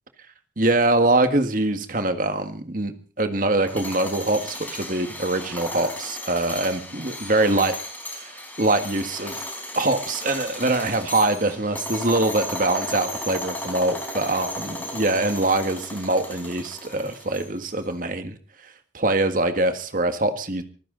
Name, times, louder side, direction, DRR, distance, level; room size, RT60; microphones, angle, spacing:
voice 1, 0.6-7.7 8.2-9.4 9.8-18.4 18.6-20.6, right 2 dB, 45° right, 8 dB, 1.7 m, -23 dB
sound 1, 3.6-17.7, left 1 dB, 10° left, 4.4 m, -35 dB
24.5 x 15.0 x 3.9 m, 0.40 s
head